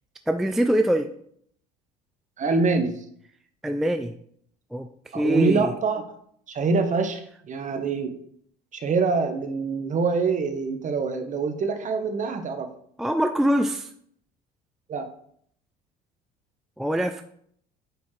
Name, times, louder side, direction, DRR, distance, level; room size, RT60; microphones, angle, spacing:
voice 1, 0.3-1.1 3.6-4.1 4.7-4.9 5.1-5.7 13.0-13.9 16.8-17.2, equal, ahead, 7 dB, 0.4 m, -23 dB
voice 2, 2.4-3.0 5.1-6.0 6.5-8.1 8.7-12.7 14.9-15.1, right 4 dB, 40° right, 7 dB, 1.1 m, -25 dB
9.2 x 4.3 x 3.2 m, 0.65 s
supercardioid pair, 85°, 20 cm